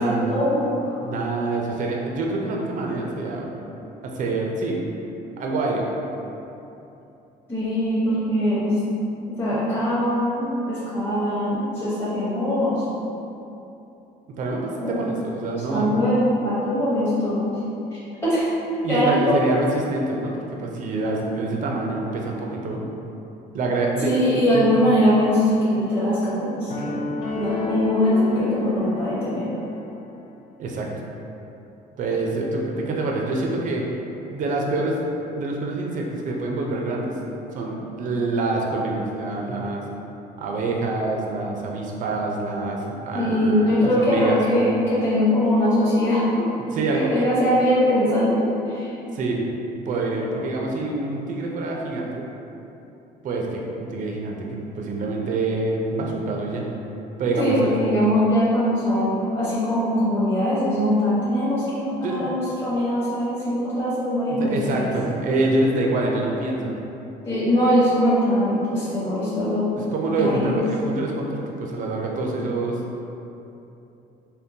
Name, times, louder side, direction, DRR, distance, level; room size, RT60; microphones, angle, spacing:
voice 1, 0.0-1.0 7.5-8.9 9.3-12.8 14.8-15.0 15.7-17.6 17.9-19.4 24.0-27.0 27.3-29.5 43.1-46.3 46.9-48.9 57.4-64.9 67.2-69.7 70.2-70.5, equal, 15° left, -13 dB, 0.9 m, -22 dB
voice 2, 1.0-3.5 4.0-4.8 5.4-5.9 14.4-16.0 18.8-22.8 23.5-24.7 30.6-30.9 32.0-33.8 34.3-35.1 35.3-37.1 37.5-39.8 40.4-44.4 46.7-47.3 49.1-49.5 49.9-52.3 53.2-56.7 57.2-57.7 62.0-62.3 64.3-66.8 69.7-72.8, right 2 dB, 50° right, -1 dB, 0.4 m, -26 dB
sound 1, 26.7-29.9, left 4 dB, 85° left, 0.5 m, -31 dB
3.6 x 2.2 x 2.7 m, 2.9 s
cardioid pair, 110°, 17 cm